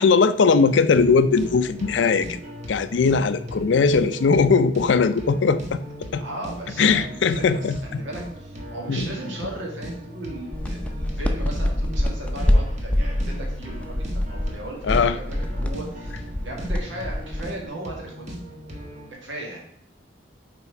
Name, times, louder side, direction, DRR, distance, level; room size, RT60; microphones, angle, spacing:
voice 1, 0.0-2.4 2.7-5.8 6.1-6.2 6.8-8.0 8.9-9.1 14.9-15.1, left 5 dB, 70° left, 13 dB, 0.4 m, -19 dB
sound 1, 0.9-19.1, equal, 40° right, 1.3 m, -38 dB
voice 2, 6.2-18.3 19.1-19.6, right 1 dB, 80° right, -1 dB, 2.0 m, -36 dB
sound 2, 10.5-17.6, left 1 dB, 5° left, 0.6 m, -25 dB
5.8 x 4.2 x 4.7 m, 0.73 s
head